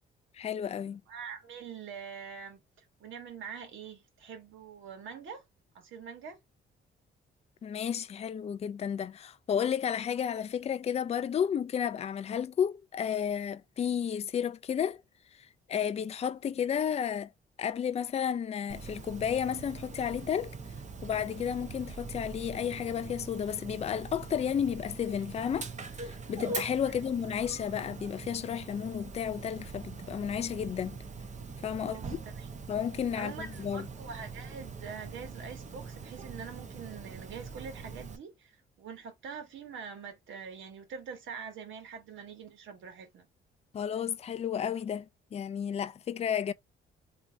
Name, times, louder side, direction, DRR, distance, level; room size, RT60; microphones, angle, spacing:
voice 1, 0.3-1.0 7.6-15.0 15.7-17.3 17.6-20.5 21.0-25.7 26.0-31.0 31.6-32.0 32.7-33.9 43.7-46.5, left 8 dB, 30° left, 0.4 m, -32 dB
voice 2, 1.1-2.6 3.0-5.4 5.7-6.4 31.8-32.5 33.1-43.3, right 6 dB, 75° right, 1.6 m, -44 dB
Dog, 18.7-38.2, right 4 dB, 35° right, 0.9 m, -43 dB
3.3 x 2.7 x 3.3 m
cardioid pair, 90°, 20 cm